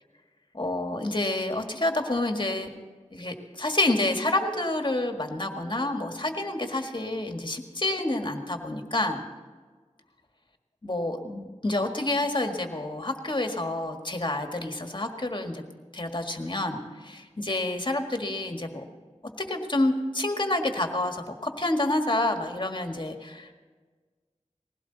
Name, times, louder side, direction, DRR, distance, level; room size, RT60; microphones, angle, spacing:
voice 1, 0.5-2.7 3.1-9.2 10.8-15.6 15.9-18.8 19.4-23.5, left 1 dB, 40° left, 4 dB, 1.7 m, -28 dB
20.5 x 16.5 x 4.0 m, 1.5 s
wide cardioid pair, 50°, 12 cm